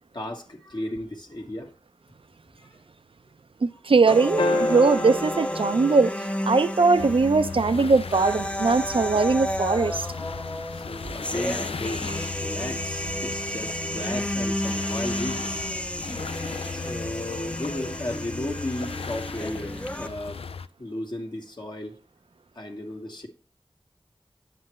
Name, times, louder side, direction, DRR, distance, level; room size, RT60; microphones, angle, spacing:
voice 1, 0.1-1.7 2.6-2.8 10.7-12.1 12.3-15.7 16.7-20.4 20.8-21.9 22.5-23.3, left 1 dB, 50° left, 1.6 m, -34 dB
voice 2, 3.6-6.1 6.4-10.1, right 4 dB, 70° right, 0.5 m, -20 dB
sound 1, 4.1-20.1, equal, 10° left, 0.6 m, -32 dB
sound 2, 4.4-6.9 9.1-9.2, left 2 dB, 70° left, 0.8 m, -30 dB
sound 3, 6.9-20.7, left 5 dB, 90° left, 0.4 m, -37 dB
9.0 x 7.6 x 3.1 m
wide cardioid pair, 45°, 10 cm